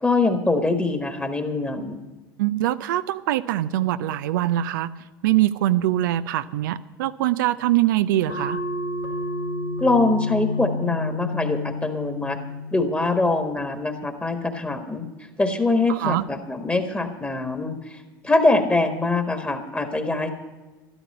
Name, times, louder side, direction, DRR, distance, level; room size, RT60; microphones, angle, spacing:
voice 1, 0.0-2.0 9.8-12.4 12.7-15.1 15.4-20.3, left 3 dB, 10° left, 6 dB, 1.6 m, -23 dB
voice 2, 2.4-4.9 5.2-8.6 15.9-16.2, right 14 dB, 65° right, 13 dB, 0.5 m, -23 dB
sound 1, 8.3-13.4, left 2 dB, 75° left, 2.6 m, -30 dB
13.0 x 12.5 x 5.5 m, 1.2 s
figure-of-eight pair, 70°, 11 cm